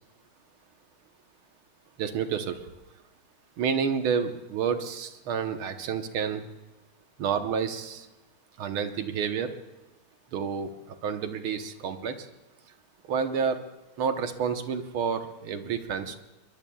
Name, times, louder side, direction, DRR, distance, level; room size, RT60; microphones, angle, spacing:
voice 1, 2.0-2.6 3.6-6.4 7.2-8.1 8.6-9.5 10.3-10.7 11.0-12.3 13.1-13.6 14.0-16.2, right 6 dB, 85° right, 7 dB, 2.0 m, -29 dB
23.5 x 21.5 x 2.4 m, 1.0 s
omnidirectional pair, 2.3 m